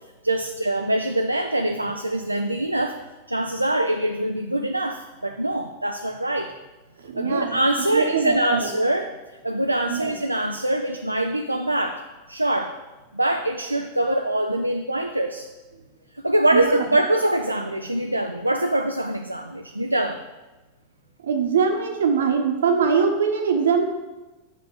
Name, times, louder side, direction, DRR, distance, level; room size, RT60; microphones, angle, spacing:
voice 1, 0.2-3.0 3.3-6.5 7.2-9.2 9.4-12.0 12.3-12.7 13.1-15.5 16.2-20.2, right 1 dB, 85° right, 5 dB, 0.4 m, -24 dB
voice 2, 7.0-7.6 7.9-8.7 9.9-10.1 16.5-16.8 21.2-23.8, right 6 dB, 65° right, 4 dB, 0.9 m, -22 dB
5.4 x 5.3 x 6.6 m, 1.1 s
figure-of-eight pair, 90°, 0 cm